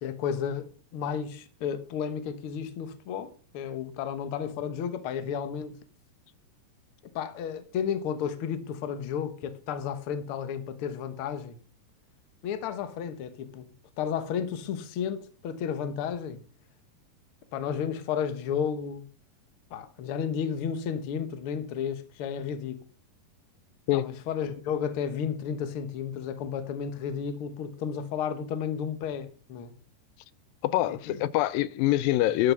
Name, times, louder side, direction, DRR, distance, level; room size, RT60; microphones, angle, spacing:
voice 1, 0.0-5.8 7.1-11.6 12.4-13.7 14.0-16.4 17.5-19.1 19.7-22.8 23.9-29.7 30.9-31.2, left 7 dB, 60° left, 1.5 m, -32 dB
voice 2, 30.6-32.5, left 14 dB, 85° left, 2.4 m, -25 dB
12.0 x 7.2 x 5.6 m
omnidirectional pair, 4.0 m